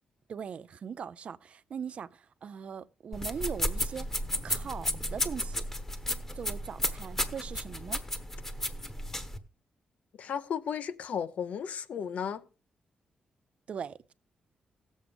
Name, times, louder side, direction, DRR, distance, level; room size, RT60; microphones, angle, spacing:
voice 1, 0.3-4.1 4.4-5.6 6.3-8.0 13.7-14.1, right 7 dB, 55° right, 0.4 m, -40 dB
sound 1, 3.1-9.4, left 1 dB, 15° left, 1.0 m, -33 dB
voice 2, 10.2-12.4, left 7 dB, 70° left, 0.7 m, -34 dB
17.0 x 7.3 x 3.5 m
cardioid pair, 105°, 3 cm